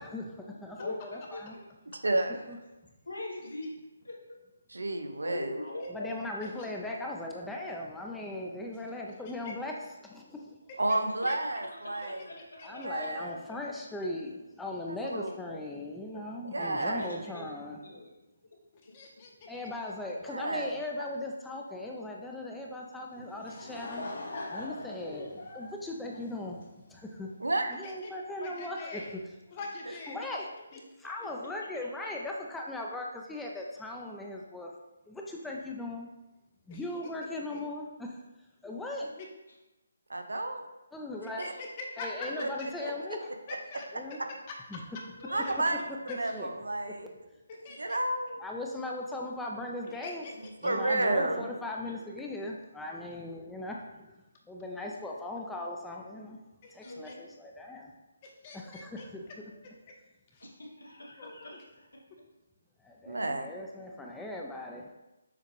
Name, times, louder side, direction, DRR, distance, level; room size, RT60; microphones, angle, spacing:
voice 1, 0.0-1.5 2.5-2.6 5.2-5.4 5.9-10.6 12.6-17.8 19.5-24.1 24.5-27.3 27.7-29.2 29.9-30.5 31.0-34.7 35.1-36.1 36.7-38.2 38.6-39.1 40.9-41.4 42.0-43.2 43.9-44.2 44.7-44.8 46.1-46.5 48.4-50.3 50.6-54.2 54.5-56.4 56.7-57.9 58.5-59.6 62.8-64.9, left 2 dB, 5° left, -1 dB, 0.4 m, -39 dB
voice 2, 0.8-1.4 2.3-2.4 3.0-3.7 4.0-4.2 5.1-6.1 11.4-11.6 11.8-13.3 15.4-15.6 16.1-16.2 16.9-18.1 39.5-39.6 41.5-41.6 42.1-42.5 42.8-43.3 45.2-45.4 47.8-48.0 50.9-51.0 51.3-51.4 56.8-57.3 60.4-61.9, left 1 dB, 85° left, -2 dB, 1.1 m, -43 dB
voice 3, 1.9-2.4 4.7-5.6 10.8-12.3 12.7-13.4 14.9-15.3 16.5-17.2 20.3-20.8 27.4-27.7 29.9-30.0 40.1-40.7 41.4-41.5 42.4-42.5 42.8-42.9 45.3-45.8 46.2-47.1 47.8-48.4 50.3-51.5 63.1-63.5, right 2 dB, 85° right, 6 dB, 0.6 m, -31 dB
voice 4, 18.9-19.5 27.8-28.1 28.4-29.2 29.5-30.3 30.7-30.8 36.7-36.8 37.5-37.6 39.0-39.3 41.2-42.4 43.5-43.9 44.5-45.0 45.4-45.5 46.1-46.3 47.6-48.0 49.8-50.7 56.6-57.1 58.2-59.1 60.3-60.4 61.2-61.6, left 3 dB, 30° left, 1 dB, 0.8 m, -43 dB
Laughter / Crowd, 23.1-26.9, left 2 dB, 60° left, 0.8 m, -41 dB
6.6 x 2.4 x 3.2 m, 1.0 s
figure-of-eight pair, 150°, 0 cm